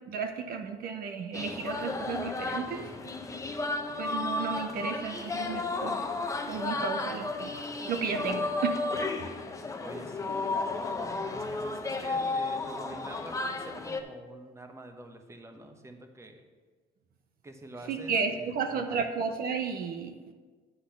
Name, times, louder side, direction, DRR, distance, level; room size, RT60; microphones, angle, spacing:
voice 1, 0.0-2.9 4.0-6.1 6.5-7.6 7.9-8.9 17.9-20.3, right 5 dB, 60° right, 6 dB, 0.7 m, -33 dB
sound 1, 1.3-14.0, left 3 dB, 20° left, 0.7 m, -33 dB
voice 2, 9.8-16.4 17.4-19.0, right 1 dB, 15° right, 5 dB, 1.0 m, -47 dB
10.0 x 4.1 x 6.7 m, 1.4 s
cardioid pair, 110°, 17 cm